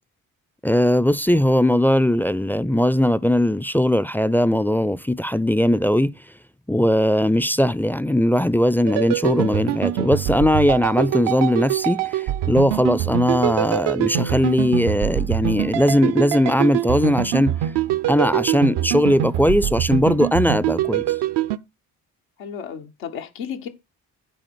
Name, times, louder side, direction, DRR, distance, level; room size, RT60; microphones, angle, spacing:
voice 1, 0.6-6.1 6.7-17.5 18.1-21.0, left 1 dB, 5° left, 0.4 m, -19 dB
sound 1, 8.9-21.6, right 13 dB, 70° right, 0.7 m, -24 dB
voice 2, 22.4-23.7, left 7 dB, 85° left, 1.2 m, -33 dB
9.3 x 4.3 x 6.1 m
hypercardioid pair, 45°, 42 cm